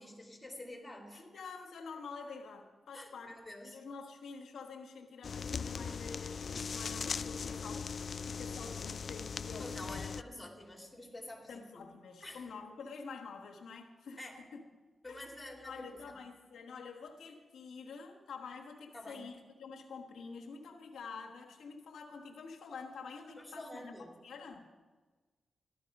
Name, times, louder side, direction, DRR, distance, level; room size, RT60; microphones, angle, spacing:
voice 1, 0.0-1.2 2.9-3.8 9.6-11.9 12.2-12.4 14.2-14.4 15.0-16.2 18.9-19.2 23.4-24.1, left 1 dB, 10° left, 1 dB, 3.0 m, -48 dB
voice 2, 1.1-3.4 3.6-10.1 11.5-14.6 15.1-24.0 24.2-24.7, left 5 dB, 85° left, 0 dB, 1.3 m, -48 dB
sound 1, 5.2-10.2, left 5 dB, 55° left, 0.4 m, -39 dB
14.0 x 11.5 x 5.3 m, 1.3 s
cardioid pair, 85°, 0 cm